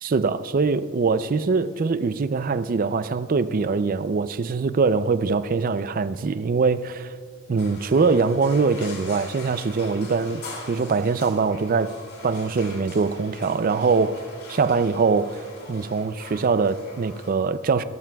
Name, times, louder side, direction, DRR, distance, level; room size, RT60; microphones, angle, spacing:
voice 1, 0.0-7.1 7.5-11.9 12.2-14.2 14.5-15.4 15.7-17.8, right 4 dB, 40° right, 0.4 m, -23 dB
sound 1, 7.6-17.3, left 2 dB, 85° left, 2.6 m, -43 dB
17.0 x 13.5 x 2.3 m
head